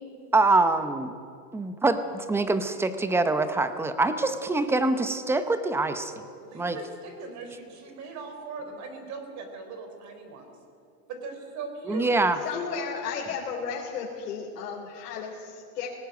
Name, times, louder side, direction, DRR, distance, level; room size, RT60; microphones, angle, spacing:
voice 1, 0.3-1.1 1.5-6.2 6.5-6.8 11.9-12.4, right 3 dB, 5° right, 10 dB, 0.7 m, -24 dB
voice 2, 6.4-10.6 11.1-12.1, right 4 dB, 35° right, 6 dB, 3.9 m, -39 dB
voice 3, 12.4-15.9, left 6 dB, 85° left, -3 dB, 3.8 m, -34 dB
19.0 x 18.5 x 9.3 m, 2.4 s
supercardioid pair, 150°, 48 cm